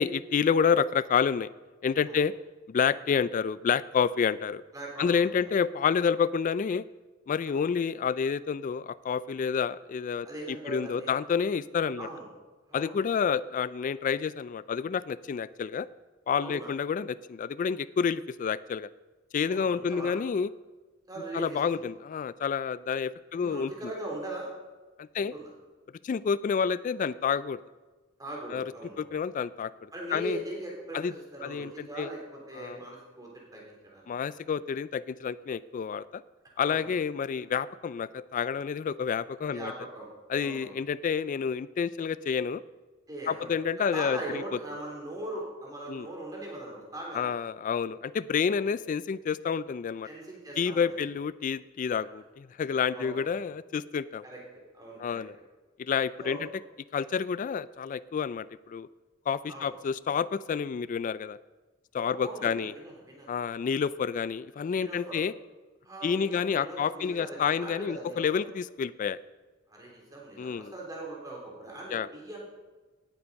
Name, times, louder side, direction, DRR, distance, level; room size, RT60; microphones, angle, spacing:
voice 1, 0.0-1.5 1.8-2.3 2.7-4.6 5.0-6.8 7.3-12.1 12.7-15.9 16.3-18.9 19.3-20.5 21.3-23.7 25.0-25.3 26.0-27.6 28.5-28.7 29.0-30.4 30.9-31.1 31.4-32.1 32.5-32.8 34.1-36.2 36.6-39.7 40.3-42.6 43.3-44.4 45.9-46.1 47.1-50.1 50.6-54.2 55.0-55.4 55.8-56.5 56.9-58.9 59.3-61.4 61.9-62.7 63.3-65.3 66.0-69.2 70.4-70.7 71.9-72.1, left 6 dB, 40° left, 16 dB, 0.3 m, -29 dB
voice 2, 4.7-5.5 7.4-7.7 10.2-11.1 12.0-12.3 12.7-13.0 16.4-16.7 19.5-20.2 21.1-21.8 23.4-24.5 25.1-25.5 28.2-29.1 29.9-32.2 32.5-34.1 36.7-36.9 39.4-40.1 40.4-40.8 43.1-47.3 48.5-48.7 50.0-51.0 52.7-53.4 54.2-54.4 54.7-55.2 56.2-56.4 59.5-59.7 62.0-63.3 64.8-65.2 65.8-68.4 69.7-72.4, right 1 dB, 20° right, -2 dB, 3.2 m, -40 dB
18.0 x 7.0 x 5.3 m, 1.3 s
head